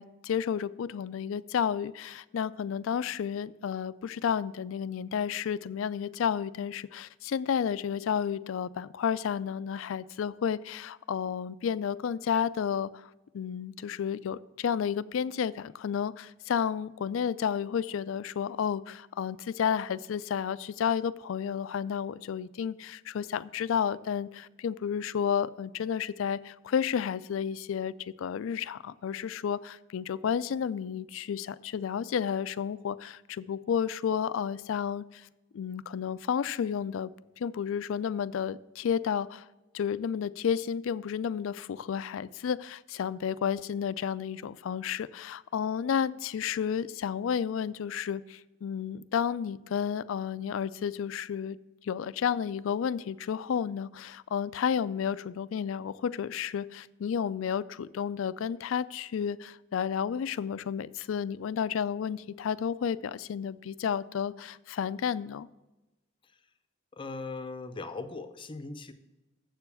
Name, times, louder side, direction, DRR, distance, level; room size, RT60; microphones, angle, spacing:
voice 1, 0.0-12.9 13.3-35.3 35.5-37.1 37.4-39.5 39.7-51.6 51.8-65.5, left 7 dB, 65° left, 17 dB, 0.3 m, -31 dB
voice 2, 66.9-68.9, left 3 dB, 25° left, 9 dB, 0.6 m, -39 dB
7.6 x 6.9 x 6.9 m, 1.1 s
head